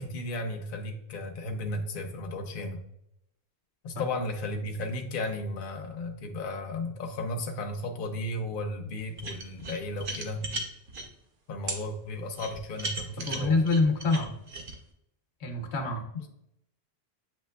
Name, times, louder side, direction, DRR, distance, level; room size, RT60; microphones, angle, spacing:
voice 1, 0.0-2.8 3.8-10.5 11.5-13.6 16.1-16.3, left 2 dB, 60° left, 5 dB, 0.8 m, -34 dB
sound 1, 9.2-11.1 11.7-11.8 12.4-14.7, right 2 dB, 55° right, 0.9 m, -36 dB
voice 2, 13.2-14.4 15.4-16.1, left 3 dB, 85° left, 4 dB, 1.0 m, -26 dB
7.6 x 2.9 x 2.2 m, 0.77 s
omnidirectional pair, 1.1 m